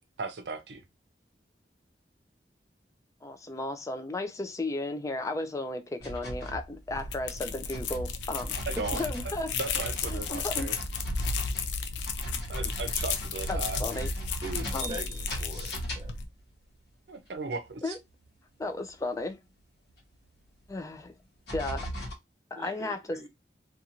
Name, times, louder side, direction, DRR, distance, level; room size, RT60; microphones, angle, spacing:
voice 1, 0.2-0.8 8.7-9.0 9.5-10.8 12.5-14.3 17.1-18.0, right 3 dB, 70° right, 0.6 m, -37 dB
voice 2, 3.2-8.5 8.9-9.5 10.1-10.7 13.5-14.1 14.7-15.0 17.8-18.0 18.6-19.4 20.7-21.1 21.5-21.9 22.5-23.3, left 2 dB, 20° left, 0.4 m, -34 dB
sound 1, 6.0-7.4 7.7-16.5 17.7-17.8 18.3-18.4 19.9-20.0 21.0-21.1 21.5-22.1, equal, 65° left, 1.0 m, -38 dB
sound 2, 6.9-16.3, left 5 dB, 85° left, 0.4 m, -34 dB
voice 3, 14.4-16.1 22.6-23.3, right 2 dB, 25° right, 0.7 m, -42 dB
2.5 x 2.4 x 2.8 m
head